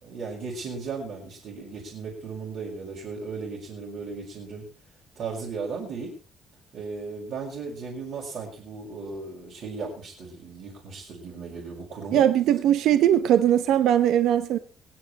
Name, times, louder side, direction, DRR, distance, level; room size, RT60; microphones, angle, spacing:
voice 1, 0.0-4.7 5.2-6.1 6.7-12.3, right 4 dB, 50° right, 6.0 m, -36 dB
voice 2, 12.1-14.6, right 10 dB, 70° right, 0.8 m, -20 dB
23.0 x 9.6 x 4.3 m
cardioid pair, 180°, 0 cm